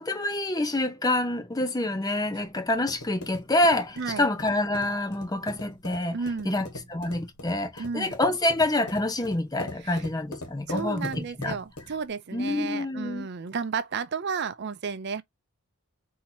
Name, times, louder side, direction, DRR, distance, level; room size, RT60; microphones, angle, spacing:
voice 1, 0.0-6.2 6.4-11.6 12.3-13.3, left 1 dB, 15° left, 0.6 m, -27 dB
sound 1, 2.3-12.1, left 1 dB, 85° left, 1.3 m, -42 dB
voice 2, 4.0-4.3 6.1-6.6 7.8-8.1 9.8-10.0 10.7-15.2, right 5 dB, 50° right, 0.5 m, -32 dB
4.2 x 2.8 x 4.2 m
head